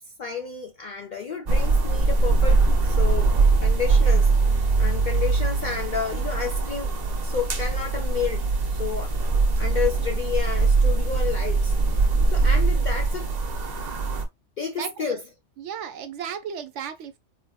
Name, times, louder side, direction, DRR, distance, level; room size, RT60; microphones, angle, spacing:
voice 1, 0.2-3.3 3.6-6.9 7.2-8.4 8.7-9.1 9.6-11.7 12.3-13.3 14.6-15.2, left 6 dB, 60° left, 0.4 m, -31 dB
sound 1, 1.5-14.3, right 3 dB, 45° right, 0.6 m, -22 dB
voice 2, 14.8-15.2 15.6-17.2, right 7 dB, 75° right, 0.9 m, -34 dB
3.8 x 2.5 x 2.2 m
omnidirectional pair, 1.3 m